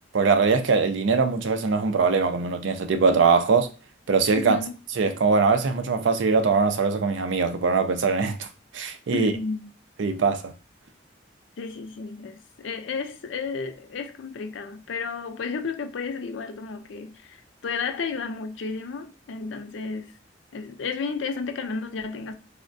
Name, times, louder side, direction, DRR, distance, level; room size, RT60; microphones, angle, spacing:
voice 1, 0.1-3.7 4.1-4.6 5.0-8.5 8.7-9.3 10.0-10.5, right 4 dB, 75° right, 0.4 m, -22 dB
voice 2, 4.4-4.7 9.1-9.7 11.6-20.1 20.5-22.3, left 4 dB, 80° left, 0.4 m, -32 dB
3.5 x 2.1 x 2.5 m
head